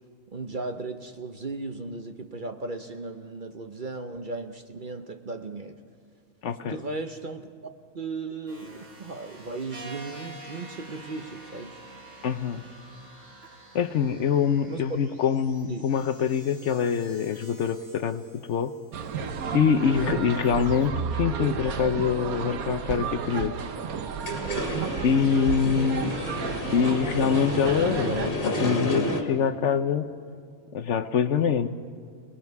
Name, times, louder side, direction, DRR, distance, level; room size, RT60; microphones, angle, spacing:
voice 1, 0.3-5.8 6.6-11.8 14.7-15.0 15.7-15.8 19.9-20.3, right 3 dB, 40° right, 7 dB, 0.8 m, -36 dB
voice 2, 6.4-6.8 12.2-12.6 13.7-18.2 18.5-18.7 19.5-23.5 25.0-26.2 26.7-30.1 30.7-31.7, left 7 dB, 60° left, 11 dB, 0.9 m, -25 dB
sound 1, 8.5-19.3 19.6-20.0 20.3-20.9, right 2 dB, 60° right, 5.1 m, -48 dB
sound 2, 18.9-28.3, right 6 dB, 85° right, 1.4 m, -32 dB
sound 3, 24.1-29.2, left 1 dB, 40° left, 2.1 m, -31 dB
29.0 x 19.5 x 4.7 m, 2.3 s
omnidirectional pair, 1.5 m